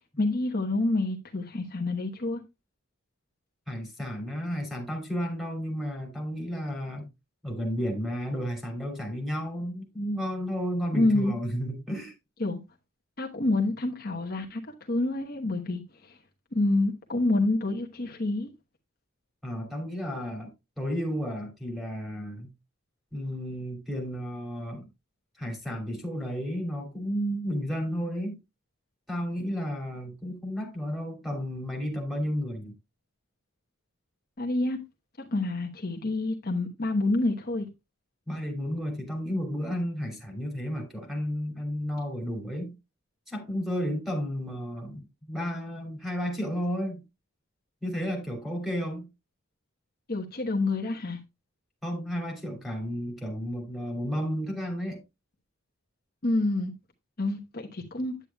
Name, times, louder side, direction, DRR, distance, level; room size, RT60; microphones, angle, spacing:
voice 1, 0.2-2.4 10.9-11.3 12.4-12.6 13.2-14.6 14.9-15.8 16.5-18.5 34.4-34.8 35.3-37.7 50.1-51.2 56.2-56.7 57.2-58.1, left 2 dB, 45° left, 1.1 m, -27 dB
voice 2, 3.7-7.1 7.4-12.1 19.4-20.5 20.8-22.5 23.1-24.8 25.4-28.4 29.1-32.7 38.3-42.7 43.3-47.0 47.8-49.1 51.8-55.0, equal, ahead, 2.8 m, -32 dB
9.7 x 8.7 x 2.3 m
head